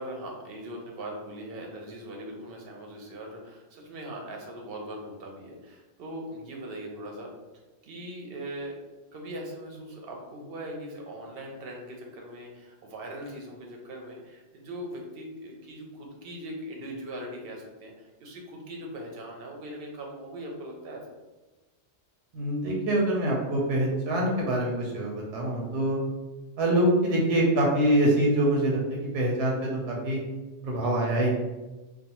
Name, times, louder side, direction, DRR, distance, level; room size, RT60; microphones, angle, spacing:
voice 1, 0.0-7.3 7.8-8.8 9.1-21.0 30.8-31.3, right 1 dB, 65° right, 0 dB, 0.7 m, -40 dB
voice 2, 22.3-26.0 26.6-30.2 30.6-31.3, right 1 dB, 85° right, -2 dB, 0.9 m, -25 dB
2.4 x 2.2 x 2.8 m, 1.1 s
omnidirectional pair, 1.2 m